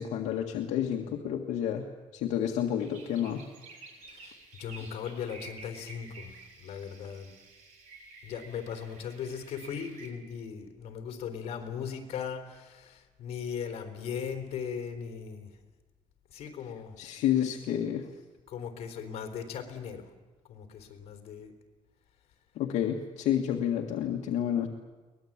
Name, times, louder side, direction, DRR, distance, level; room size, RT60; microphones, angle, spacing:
voice 1, 0.0-3.4 17.0-18.0 22.6-24.7, left 10 dB, 75° left, 1 dB, 1.8 m, -30 dB
sound 1, 2.7-10.1, right 3 dB, 90° right, 6.0 m, -51 dB
voice 2, 4.1-6.3 6.6-7.3 8.2-15.5 16.3-17.0 18.5-20.1 20.5-21.5, left 7 dB, 55° left, 5 dB, 3.7 m, -38 dB
23.5 x 19.5 x 8.8 m, 1.3 s
cardioid pair, 175°, 12 cm